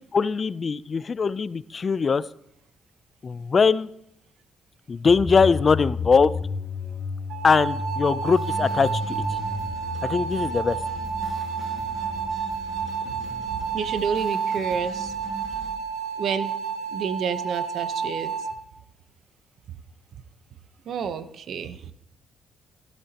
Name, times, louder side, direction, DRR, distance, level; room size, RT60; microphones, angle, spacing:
voice 1, 0.0-2.2 3.2-3.9 4.9-6.3 7.4-9.4 10.0-10.8, left 5 dB, 40° left, 17 dB, 0.4 m, -21 dB
sound 1, 5.1-13.9, left 3 dB, 15° left, 2.8 m, -34 dB
sound 2, 7.3-18.5, right 6 dB, 90° right, 1.6 m, -30 dB
sound 3, 8.3-15.7, right 1 dB, 35° right, 5.2 m, -43 dB
voice 2, 13.7-15.1 16.2-16.6 16.9-18.3 20.9-21.9, right 7 dB, 65° right, 11 dB, 0.9 m, -29 dB
16.0 x 12.5 x 2.9 m, 0.73 s
cardioid pair, 90°, 0 cm